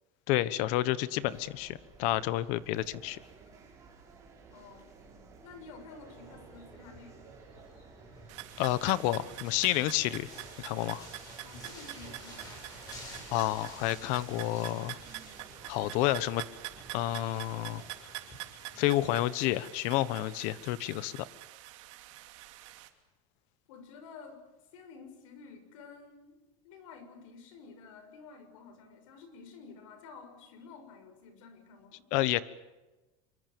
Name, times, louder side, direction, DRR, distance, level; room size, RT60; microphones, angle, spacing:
voice 1, 0.3-3.2 8.6-10.3 10.6-11.1 13.3-15.0 15.7-16.4 16.9-17.8 18.7-21.2 32.1-32.4, left 15 dB, 50° left, 16 dB, 1.3 m, -30 dB
sound 1, 1.2-17.9, right 4 dB, 20° right, 6.2 m, -55 dB
voice 2, 4.5-4.9 5.4-7.3 11.4-12.6 23.7-24.4 24.7-26.4 26.6-32.1, left 5 dB, 90° left, 8 dB, 6.5 m, -51 dB
sound 2, 6.0-18.8, left 1 dB, 25° left, 7.6 m, -52 dB
sound 3, 8.3-22.9, right 16 dB, 75° right, 2.8 m, -46 dB
26.5 x 23.5 x 7.0 m, 1.1 s
cardioid pair, 175°, 16 cm